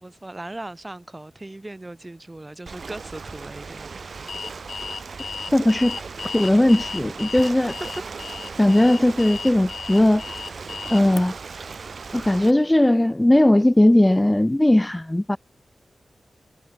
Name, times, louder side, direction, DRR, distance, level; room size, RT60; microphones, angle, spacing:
voice 1, 0.0-3.9 6.2-6.4 7.6-7.7, right 2 dB, 25° right, 7.4 m, -38 dB
Ocean, 2.7-12.5, right 5 dB, 65° right, 1.2 m, -37 dB
Alarm, 4.3-11.2, left 6 dB, 85° left, 0.9 m, -35 dB
voice 2, 5.5-6.0 6.3-7.7 8.6-10.2 10.9-11.3 12.1-15.4, left 1 dB, 15° left, 0.5 m, -18 dB
wide cardioid pair, 75°, 0 cm